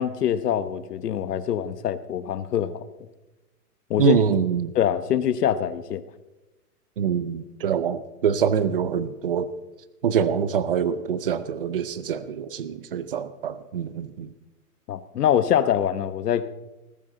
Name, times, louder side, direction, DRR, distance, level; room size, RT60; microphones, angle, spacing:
voice 1, 0.0-2.8 3.9-4.2 4.7-6.0 14.9-16.5, left 9 dB, 75° left, 13 dB, 1.2 m, -24 dB
voice 2, 4.0-4.7 7.0-9.5 10.0-14.3, right 8 dB, 35° right, 15 dB, 0.6 m, -25 dB
19.5 x 14.0 x 3.9 m, 1.1 s
hypercardioid pair, 180°, 47 cm